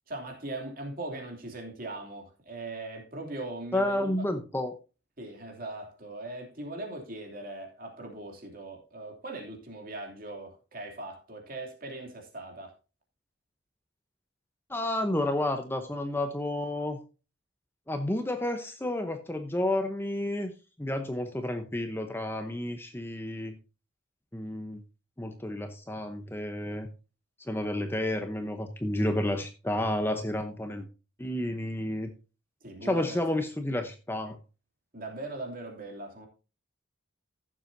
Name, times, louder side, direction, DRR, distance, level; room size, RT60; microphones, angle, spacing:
voice 1, 0.1-4.3 5.2-12.7 32.6-33.2 34.9-36.3, right 2 dB, 45° right, 2.9 m, -40 dB
voice 2, 3.7-4.8 14.7-17.0 17.9-20.5 20.8-23.5 24.3-24.8 25.2-26.9 27.5-30.9 31.2-32.1 32.8-34.4, left 1 dB, 10° left, 0.8 m, -31 dB
15.0 x 7.4 x 2.7 m
head